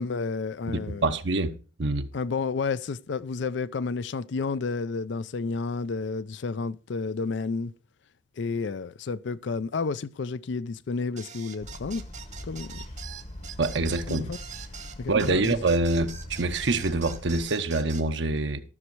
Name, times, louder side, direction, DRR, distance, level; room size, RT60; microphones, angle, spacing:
voice 1, 0.0-1.1 2.1-7.7 8.4-12.0 12.4-12.8 14.1-14.4 15.0-15.5, left 4 dB, 60° left, 0.4 m, -31 dB
voice 2, 0.7-1.5 1.8-2.1 13.6-14.2 15.1-18.6, right 2 dB, 65° right, 0.9 m, -25 dB
sound 1, 11.2-18.1, right 8 dB, 40° right, 0.9 m, -43 dB
sound 2, 11.6-17.5, left 1 dB, 35° left, 1.0 m, -41 dB
13.0 x 6.3 x 4.6 m
head